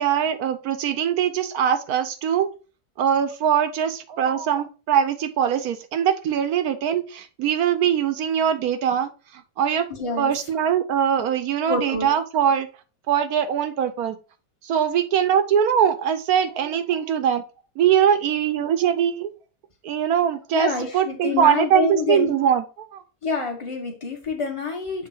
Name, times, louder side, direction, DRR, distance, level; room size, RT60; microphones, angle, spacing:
voice 1, 0.0-2.5 3.0-9.1 9.6-9.9 10.2-12.7 13.1-14.2 14.6-17.4 17.8-19.3 19.8-23.0, right 9 dB, 70° right, 10 dB, 1.2 m, -22 dB
voice 2, 9.9-10.3 11.7-12.1 20.5-22.3 23.2-25.1, left 4 dB, 20° left, 1 dB, 1.4 m, -27 dB
7.5 x 3.6 x 4.5 m, 0.34 s
omnidirectional pair, 1.8 m